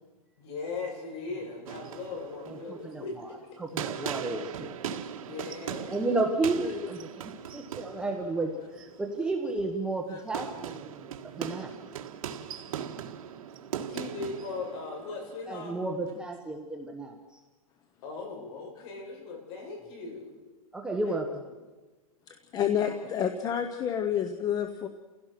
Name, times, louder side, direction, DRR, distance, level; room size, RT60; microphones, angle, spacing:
voice 1, 0.4-3.4 5.1-6.0 13.9-15.8 18.0-20.4 21.0-21.1 22.8-23.0, left 4 dB, 45° left, 1 dB, 8.0 m, -39 dB
sound 1, 1.7-16.2, right 9 dB, 70° right, 1.8 m, -40 dB
voice 2, 2.5-3.3 3.6-4.7 5.9-7.2 7.5-11.7 15.5-17.4 20.7-21.4, right 2 dB, 5° right, 2 dB, 1.4 m, -32 dB
voice 3, 22.3-24.9, left 9 dB, 20° left, 8 dB, 1.1 m, -29 dB
30.0 x 16.5 x 6.0 m, 1.2 s
supercardioid pair, 155°, 19 cm